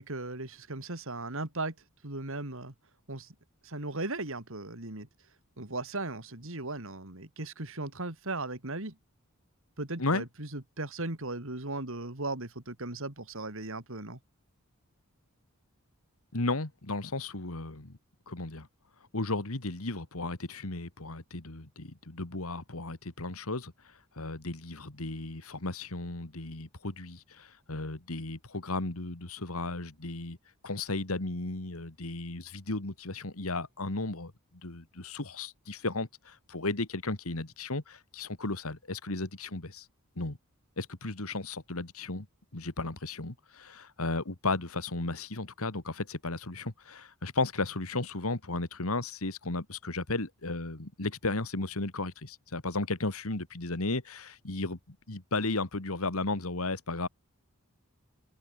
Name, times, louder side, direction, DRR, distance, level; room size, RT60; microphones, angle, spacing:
voice 1, 0.0-1.7 2.0-2.7 3.1-3.3 3.6-5.1 5.6-9.0 9.8-14.2, right 2 dB, 60° right, 3.2 m, -37 dB
voice 2, 16.3-18.0 18.3-18.7 19.1-23.7 24.2-30.4 30.6-34.3 34.6-39.9 40.2-40.4 40.8-42.3 42.5-57.1, left 2 dB, 70° left, 2.2 m, -34 dB
head